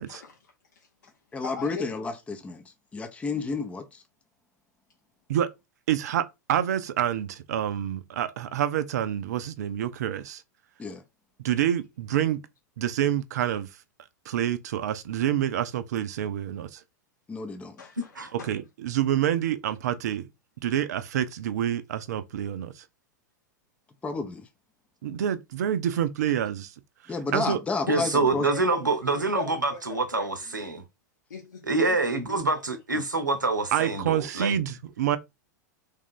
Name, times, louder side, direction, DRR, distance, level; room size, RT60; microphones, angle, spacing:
voice 1, 0.0-1.1 1.4-1.9 17.8-18.5 27.9-30.8 31.3-32.0 32.3-32.6, left 6 dB, 75° left, 0.7 m, -40 dB
voice 2, 1.3-4.0 10.8-11.0 17.3-17.8 24.0-24.5 27.1-28.5, left 4 dB, 15° left, 0.6 m, -31 dB
voice 3, 5.9-10.4 11.4-12.4 12.8-13.8 14.3-16.8 18.3-20.3 20.6-22.9 25.0-26.7 27.0-27.6 32.9-33.0 33.7-35.2, right 10 dB, 60° right, 0.5 m, -27 dB
voice 4, 27.9-30.8 31.7-34.5, right 3 dB, 85° right, 0.8 m, -26 dB
3.5 x 2.5 x 3.5 m
figure-of-eight pair, 95°, 10 cm